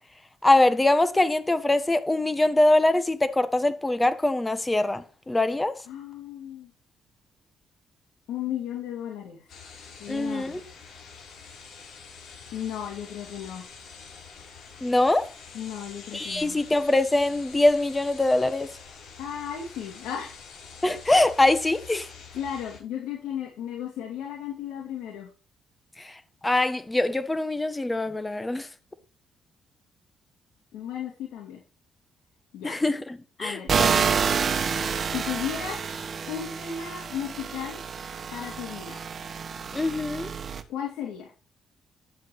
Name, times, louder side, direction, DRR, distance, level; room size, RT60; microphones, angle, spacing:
voice 1, 0.4-5.7 10.1-10.6 14.8-15.3 16.1-18.7 20.8-22.1 26.0-26.2 26.4-28.7 32.6-33.0 33.4-33.9 39.7-40.3, left 2 dB, 15° left, 1.3 m, -23 dB
voice 2, 5.9-6.7 8.3-9.5 10.0-10.6 12.5-13.7 15.5-16.6 19.2-20.5 22.3-25.3 30.7-31.6 32.5-32.8 33.4-33.7 35.1-35.8 36.3-37.8 38.3-39.0 40.7-41.3, left 9 dB, 85° left, 2.9 m, -34 dB
sound 1, 9.5-22.8, left 5 dB, 65° left, 6.8 m, -46 dB
sound 2, 33.7-40.6, right 6 dB, 50° right, 1.3 m, -28 dB
11.0 x 7.5 x 4.9 m
cardioid pair, 90°, 0 cm